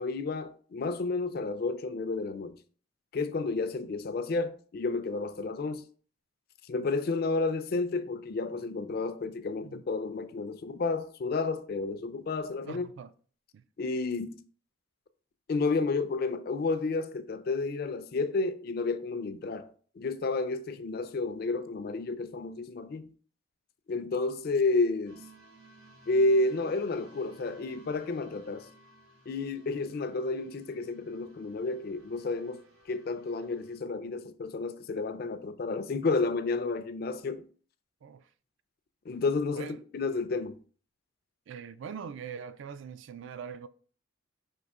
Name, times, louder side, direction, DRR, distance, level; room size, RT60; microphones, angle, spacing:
voice 1, 0.0-2.6 3.1-5.8 6.7-12.9 13.8-14.4 15.5-19.7 20.0-23.1 23.9-25.2 26.1-28.7 29.3-37.4 39.1-40.6, left 3 dB, 45° left, 0.4 m, -31 dB
voice 2, 12.6-13.1 13.5-13.6 38.0-38.3 39.5-39.8 41.5-43.7, right 7 dB, 65° right, 0.3 m, -42 dB
sound 1, 25.1-33.8, right 2 dB, 85° right, 1.5 m, -58 dB
5.3 x 2.8 x 3.5 m
head